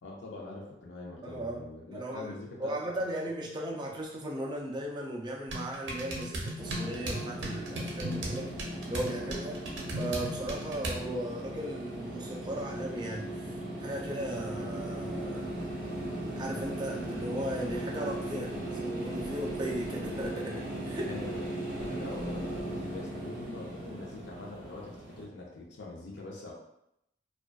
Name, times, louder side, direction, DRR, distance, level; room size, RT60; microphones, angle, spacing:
voice 1, 0.0-2.8 21.0-26.5, left 2 dB, 70° left, -3 dB, 0.5 m, -44 dB
voice 2, 1.2-1.7 1.9-8.5 8.9-9.6 10.0-15.6 16.4-21.1, right 1 dB, 25° right, -2 dB, 0.4 m, -37 dB
sound 1, 5.5-11.0, right 1 dB, 80° right, 0.5 m, -37 dB
sound 2, 6.6-25.2, right 1 dB, 25° left, 1.0 m, -38 dB
2.4 x 2.3 x 2.2 m, 0.79 s
head